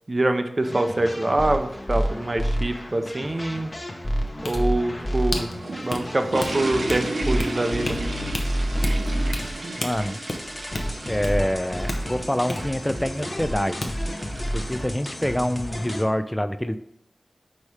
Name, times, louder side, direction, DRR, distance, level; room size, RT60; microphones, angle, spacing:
voice 1, 0.1-3.7 4.4-5.5 5.8-8.0, right 2 dB, 40° right, 7 dB, 0.6 m, -24 dB
sound 1, 0.6-16.0, equal, 30° left, 0.9 m, -30 dB
sound 2, 4.3-13.6 13.8-13.9, left 2 dB, 65° left, 0.8 m, -34 dB
sound 3, 5.4-15.5, right 2 dB, 75° right, 0.7 m, -35 dB
voice 2, 9.8-10.2 11.1-13.9 14.5-16.8, equal, 10° left, 11 dB, 0.4 m, -26 dB
4.9 x 4.2 x 4.8 m, 0.78 s
wide cardioid pair, 75°, 0 cm